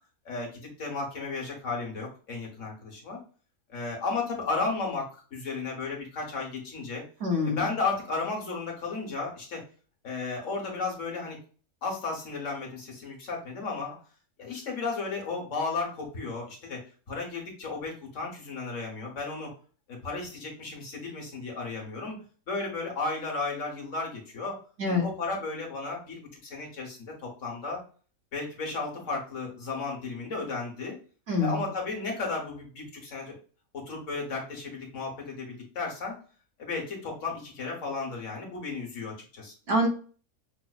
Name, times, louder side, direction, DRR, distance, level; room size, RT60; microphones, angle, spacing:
voice 1, 0.2-3.2 3.7-7.0 7.4-9.6 10.0-11.4 11.8-14.0 14.4-19.5 19.9-22.2 22.5-24.6 24.9-27.8 28.3-31.0 31.4-33.4 33.7-36.2 36.6-39.5, left 3 dB, 60° left, -1 dB, 1.5 m, -34 dB
voice 2, 7.2-7.7 24.8-25.1 31.3-31.6 39.7-39.9, left 2 dB, 50° right, 0 dB, 1.1 m, -25 dB
5.7 x 2.0 x 2.3 m, 0.40 s
omnidirectional pair, 1.6 m